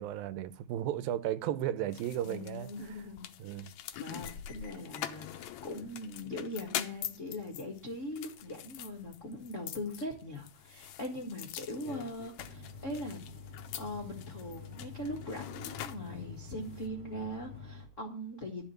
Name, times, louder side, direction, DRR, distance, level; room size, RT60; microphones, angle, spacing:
voice 1, 0.0-3.0 3.4-3.7, right 11 dB, 80° right, 2.4 m, -35 dB
sound 1, 1.9-16.9, left 11 dB, 85° left, 1.5 m, -44 dB
voice 2, 2.2-3.3 4.0-13.2 13.8-18.6, left 1 dB, 70° left, 0.7 m, -41 dB
sound 2, 12.4-17.9, left 5 dB, 50° right, 0.7 m, -47 dB
12.5 x 5.1 x 8.9 m
omnidirectional pair, 4.3 m